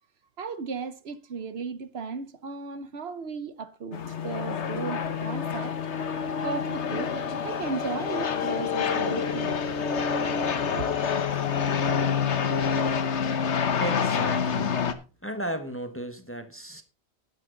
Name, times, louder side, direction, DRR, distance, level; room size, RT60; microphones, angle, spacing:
voice 1, 0.4-5.7 6.4-7.1 7.4-9.6 10.7-10.9, right 5 dB, 65° right, 1.1 m, -35 dB
sound 1, 3.9-14.9, left 6 dB, 85° left, 1.3 m, -27 dB
voice 2, 13.8-14.9 15.2-16.8, right 1 dB, 10° left, 1.1 m, -35 dB
11.5 x 10.5 x 3.8 m
omnidirectional pair, 1.1 m